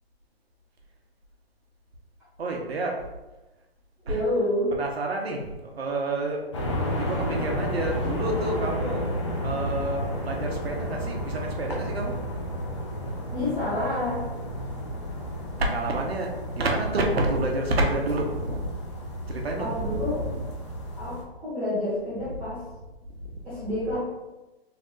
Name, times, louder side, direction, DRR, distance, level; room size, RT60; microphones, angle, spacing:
voice 1, 2.4-3.0 4.1-4.2 4.7-6.5 6.8-9.1 9.4-12.2 15.6-18.7 19.2-20.4 22.4-22.5 23.2-23.4, right 2 dB, 75° right, 1 dB, 1.0 m, -29 dB
voice 2, 4.0-4.7 13.3-14.2 19.6-20.2 21.0-22.6 23.4-24.0, left 1 dB, 5° right, -12 dB, 0.8 m, -28 dB
sound 1, 6.5-21.2, equal, 30° left, 0.5 m, -32 dB
3.5 x 2.4 x 3.8 m, 1.1 s
hypercardioid pair, 165°, 31 cm